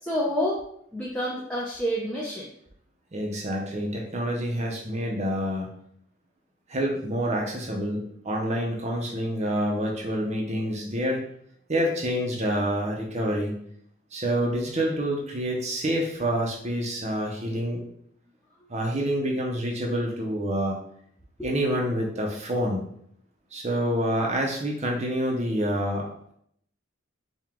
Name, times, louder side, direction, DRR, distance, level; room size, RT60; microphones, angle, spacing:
voice 1, 0.0-0.6 0.9-2.5, equal, 5° left, -5 dB, 0.6 m, -28 dB
voice 2, 3.1-5.7 6.7-11.2 11.7-13.6 14.1-17.8 18.7-20.8 21.4-22.8 23.5-26.3, equal, 30° right, -1 dB, 0.7 m, -27 dB
4.7 x 2.4 x 3.6 m, 0.68 s
head